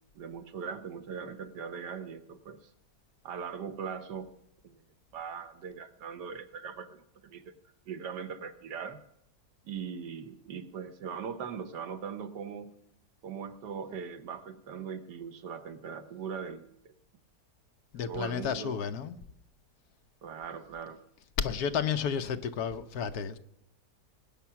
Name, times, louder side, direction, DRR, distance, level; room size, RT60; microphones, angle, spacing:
voice 1, 0.2-2.7 3.2-4.3 4.6-4.8 5.1-7.5 7.9-9.0 9.7-12.8 13.2-16.9 18.1-18.8 20.2-21.0, right 6 dB, 90° right, 9 dB, 1.7 m, -40 dB
voice 2, 17.9-19.2 21.4-23.4, left 7 dB, 70° left, 10 dB, 1.3 m, -31 dB
19.5 x 9.7 x 5.8 m, 0.77 s
omnidirectional pair, 1.8 m